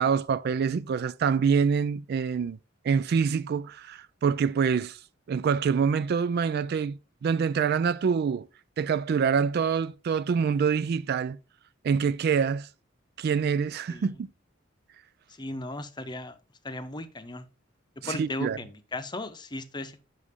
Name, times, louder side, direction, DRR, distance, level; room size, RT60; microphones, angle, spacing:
voice 1, 0.0-2.6 2.8-5.0 5.3-8.5 8.8-11.4 11.8-12.7 13.2-14.3 18.0-18.6, right 6 dB, 55° right, 0.3 m, -26 dB
voice 2, 15.4-16.3 16.6-17.5 18.0-20.0, left 2 dB, 20° left, 0.7 m, -36 dB
8.2 x 6.1 x 3.5 m
head